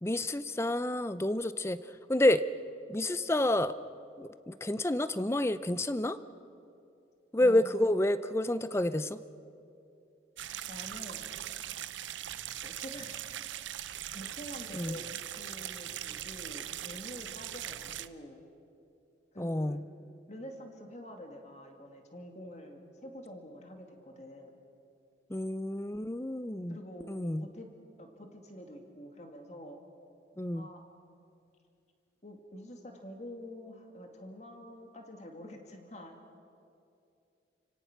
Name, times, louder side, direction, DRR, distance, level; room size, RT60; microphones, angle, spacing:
voice 1, 0.0-2.4 2.9-3.7 4.2-6.2 7.3-9.2 14.7-15.0 19.4-19.8 25.3-26.8 27.1-27.5 30.4-30.7, left 1 dB, 15° left, 13 dB, 0.5 m, -29 dB
voice 2, 7.4-7.9 10.7-11.3 12.6-13.2 14.1-18.4 19.3-19.9 20.3-24.5 26.7-27.7 28.0-29.8 30.5-30.8 32.2-36.2, equal, 40° left, 3 dB, 2.3 m, -47 dB
sound 1, 10.4-18.1, right 11 dB, 85° right, 0.6 m, -40 dB
29.5 x 17.5 x 6.0 m, 2.6 s
head